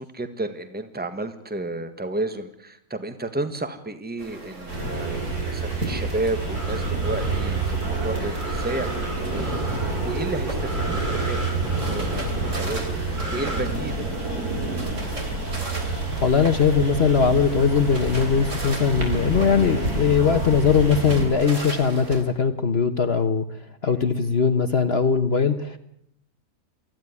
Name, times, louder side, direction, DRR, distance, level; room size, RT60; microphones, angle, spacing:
voice 1, 0.0-14.8 23.8-24.0, right 2 dB, 5° right, 9 dB, 1.6 m, -32 dB
sound 1, 4.2-22.2, right 2 dB, 55° right, 3.8 m, -37 dB
sound 2, 4.7-21.3, right 3 dB, 80° right, 6.2 m, -28 dB
sound 3, 6.5-13.6, right 1 dB, 30° right, 6.1 m, -33 dB
voice 2, 16.2-23.4 23.8-25.8, left 6 dB, 45° left, 10 dB, 1.3 m, -20 dB
24.5 x 15.5 x 9.7 m, 0.77 s
omnidirectional pair, 1.6 m